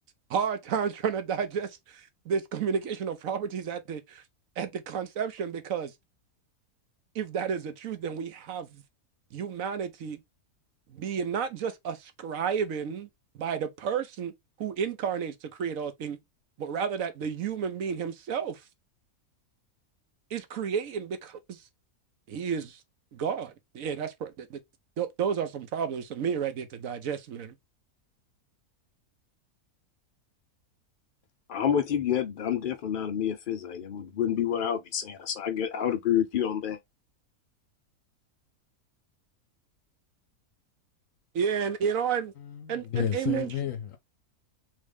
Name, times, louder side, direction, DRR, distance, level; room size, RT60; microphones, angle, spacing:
voice 1, 0.3-4.2 4.6-5.9 7.1-8.8 9.3-10.2 10.9-13.1 13.3-14.3 14.6-16.2 16.6-18.6 20.3-21.6 22.3-22.8 23.1-24.6 25.0-27.5 41.3-42.3 42.7-43.5, right 7 dB, 65° right, 1.1 m, -31 dB
voice 2, 31.5-36.8, left 9 dB, 85° left, 0.4 m, -28 dB
voice 3, 42.4-44.0, left 9 dB, 65° left, 1.0 m, -32 dB
3.7 x 3.2 x 3.4 m
omnidirectional pair, 1.6 m